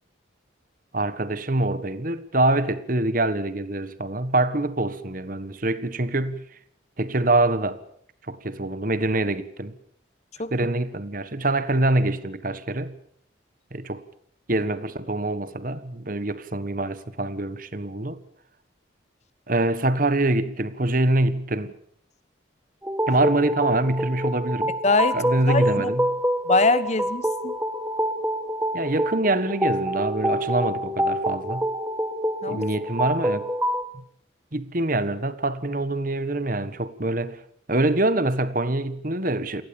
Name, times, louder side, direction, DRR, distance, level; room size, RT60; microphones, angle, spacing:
voice 1, 0.9-6.4 7.0-7.8 8.3-9.7 10.5-12.9 13.7-14.0 14.5-18.2 19.5-21.7 23.1-24.8 25.1-26.1 28.7-31.7 32.5-33.5 33.9-34.0 34.5-37.4 37.7-39.6, right 2 dB, 45° right, 1.4 m, -25 dB
sound 1, 22.8-33.8, equal, 10° right, 1.8 m, -26 dB
voice 2, 24.8-25.2 25.5-25.9 26.5-27.5 32.4-32.6, left 3 dB, 35° left, 1.2 m, -22 dB
28.5 x 19.5 x 7.1 m
head